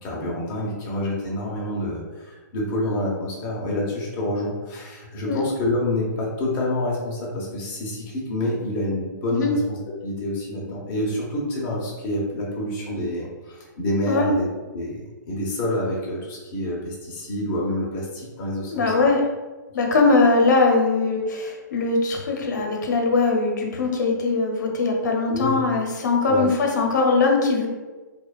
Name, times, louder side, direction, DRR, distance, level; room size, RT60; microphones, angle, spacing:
voice 1, 0.0-18.9 25.3-25.6 26.2-26.5, left 1 dB, 15° left, -4 dB, 0.4 m, -27 dB
voice 2, 18.7-19.2 19.7-27.7, left 3 dB, 65° left, 1 dB, 0.6 m, -21 dB
2.7 x 2.1 x 2.3 m, 1.2 s
hypercardioid pair, 170°, 11 cm